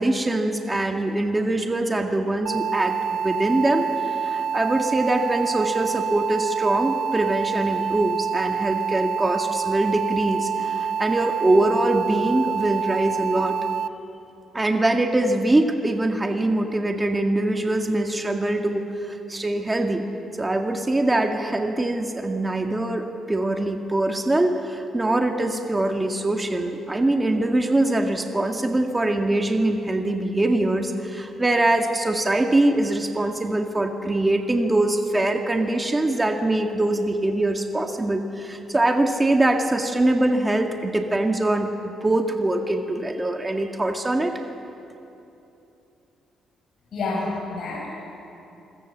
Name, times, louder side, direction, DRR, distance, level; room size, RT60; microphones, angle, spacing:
voice 1, 0.0-13.6 14.5-20.0 20.4-44.4, right 2 dB, 15° right, 3 dB, 1.9 m, -23 dB
sound 1, 2.5-13.9, right 7 dB, 75° right, 0.7 m, -27 dB
voice 2, 46.9-47.9, left 3 dB, 60° left, -4 dB, 6.3 m, -28 dB
27.0 x 21.5 x 7.4 m, 2.9 s
cardioid pair, 90°, 0 cm